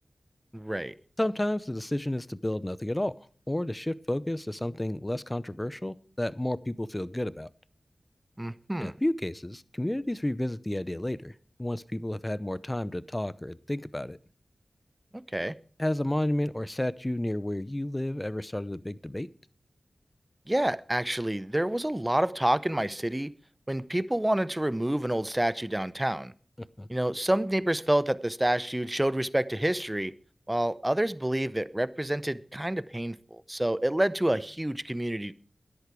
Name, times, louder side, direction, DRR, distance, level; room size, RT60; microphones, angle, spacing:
voice 1, 0.5-0.9 8.4-8.9 15.1-15.5 20.5-23.3 23.7-26.3 26.9-30.1 30.5-35.3, right 1 dB, 15° right, 0.7 m, -28 dB
voice 2, 1.2-3.1 3.5-7.5 8.8-11.3 11.6-14.2 15.8-19.3 26.8-26.9, left 1 dB, 20° left, 0.7 m, -31 dB
13.0 x 10.5 x 4.7 m
cardioid pair, 50°, 0 cm